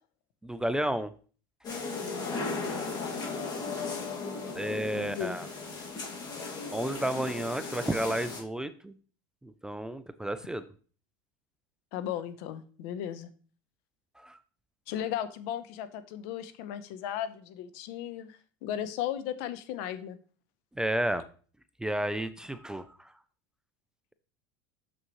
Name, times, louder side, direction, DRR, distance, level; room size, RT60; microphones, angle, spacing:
voice 1, 0.4-1.1 4.5-5.5 6.7-9.0 9.4-10.6 14.2-14.4 20.8-21.3 21.8-23.1, right 1 dB, 5° right, 12 dB, 0.4 m, -32 dB
sound 1, 1.6-8.4, left 4 dB, 35° left, 2.1 m, -36 dB
voice 2, 4.9-5.4 11.9-13.3 14.9-20.2, left 10 dB, 65° left, 12 dB, 0.8 m, -36 dB
6.7 x 6.1 x 3.1 m, 0.41 s
supercardioid pair, 115°, 12 cm